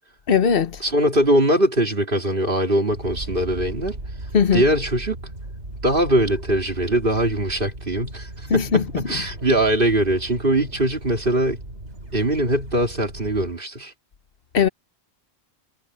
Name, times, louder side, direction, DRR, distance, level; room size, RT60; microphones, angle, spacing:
voice 1, 0.3-0.8 4.3-4.6 8.5-9.0 14.5-14.7, left 6 dB, 60° left, 1.1 m, -19 dB
voice 2, 0.8-4.0 4.5-5.2 5.8-11.6 12.1-13.9, right 1 dB, 50° right, 3.5 m, -21 dB
sound 1, 2.9-13.5, right 1 dB, 85° right, 4.9 m, -37 dB
omnidirectional pair, 1.1 m